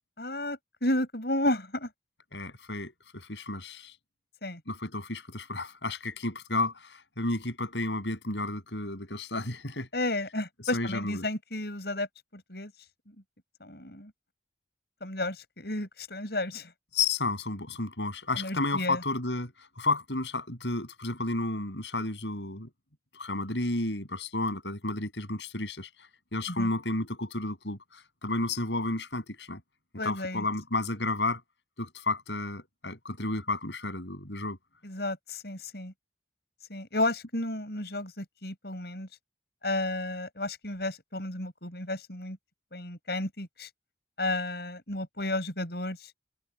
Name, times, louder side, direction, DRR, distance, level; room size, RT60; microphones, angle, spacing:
voice 1, 0.2-1.9 4.4-4.6 9.9-12.1 12.3-12.7 13.1-13.2 13.6-14.1 15.0-16.7 18.4-19.0 26.5-26.7 30.0-30.5 34.8-35.9 36.7-39.1 39.6-42.4 42.7-43.7 44.2-46.1, left 1 dB, 65° left, 7.4 m, -32 dB
voice 2, 2.3-4.0 4.7-9.9 10.7-11.3 16.9-22.7 23.1-29.6 30.0-31.4 31.8-34.6, left 2 dB, 85° left, 7.3 m, -32 dB
head